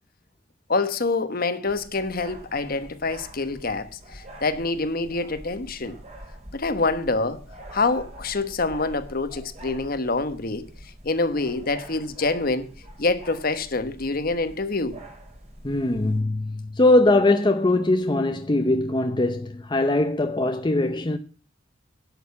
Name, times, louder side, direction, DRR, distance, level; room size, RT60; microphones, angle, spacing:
voice 1, 0.7-6.0 6.5-7.4 7.7-10.7 11.0-12.7 13.0-15.0, left 3 dB, 50° left, 1.1 m, -26 dB
sound 1, 1.6-16.2, right 1 dB, 35° right, 3.6 m, -45 dB
voice 2, 15.6-21.2, left 2 dB, 25° left, 0.6 m, -21 dB
11.0 x 6.6 x 8.4 m
head